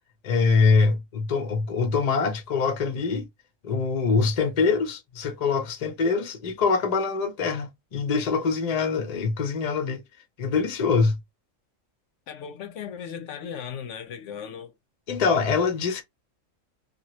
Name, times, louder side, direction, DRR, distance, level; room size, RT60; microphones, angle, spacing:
voice 1, 0.2-3.3 3.6-10.0 10.4-11.2 15.1-16.0, left 4 dB, 40° left, 0.6 m, -24 dB
voice 2, 12.3-14.7, left 7 dB, 75° left, 0.9 m, -37 dB
2.8 x 2.4 x 3.0 m
omnidirectional pair, 1.3 m